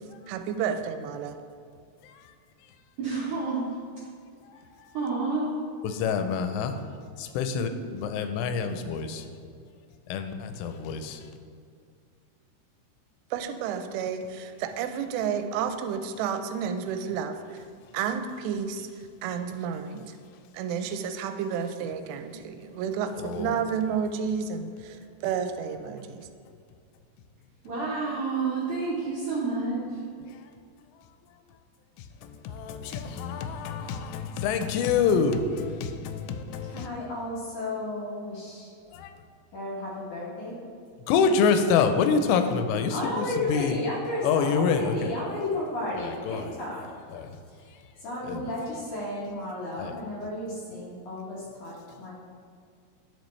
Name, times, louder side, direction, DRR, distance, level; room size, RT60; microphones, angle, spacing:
voice 1, 0.3-1.4 13.3-17.6 17.9-18.9 19.2-20.1 20.5-26.3, right 7 dB, 90° right, 2.7 m, -31 dB
voice 2, 3.0-3.6 4.9-5.5 7.5-7.6 27.6-29.8, right 4 dB, 70° right, 1.7 m, -29 dB
voice 3, 5.8-6.8 7.2-9.2 10.1-11.2 23.2-23.6 32.2-36.9 38.9-39.1 41.1-43.8 44.2-45.1 46.0-46.5 47.1-47.3 48.2-48.5 49.8-49.9, left 6 dB, 90° left, 2.8 m, -27 dB
voice 4, 36.6-38.7 39.5-40.6 42.9-46.9 48.0-52.1, left 1 dB, 60° left, 2.3 m, -33 dB
10.5 x 5.2 x 3.2 m
omnidirectional pair, 4.8 m